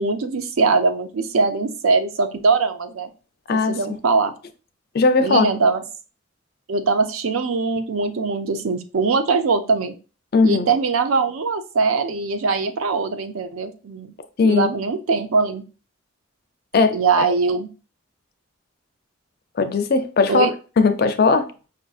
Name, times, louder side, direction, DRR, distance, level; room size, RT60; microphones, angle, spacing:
voice 1, 0.0-3.1 3.5-4.3 5.2-5.8 6.7-10.0 10.4-14.1 14.4-15.6 16.9-17.7 20.3-20.5, right 4 dB, 85° right, 0.5 m, -21 dB
voice 2, 3.5-3.8 4.9-5.5 10.3-10.7 14.4-14.7 16.7-17.0 19.6-20.5 20.8-21.5, left 4 dB, 45° left, 0.4 m, -18 dB
5.4 x 2.5 x 2.4 m
head